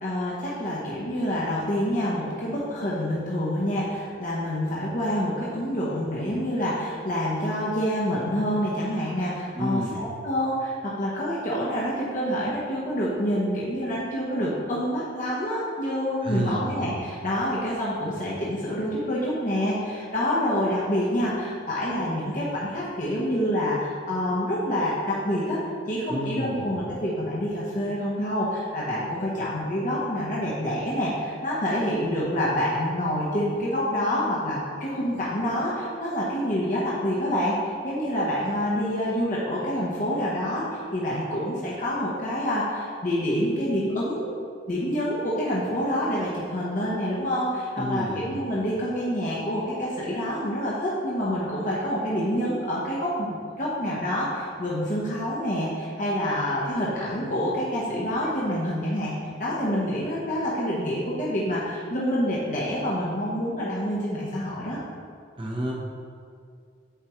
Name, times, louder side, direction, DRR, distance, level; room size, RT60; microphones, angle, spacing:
voice 1, 0.0-25.6 25.9-44.2 44.7-64.8, equal, 40° left, -6 dB, 0.9 m, -27 dB
voice 2, 9.5-10.0 16.2-16.7 26.1-26.6 47.8-48.2 65.4-65.7, equal, 25° right, -1 dB, 0.9 m, -29 dB
8.1 x 4.6 x 3.0 m, 2.2 s
head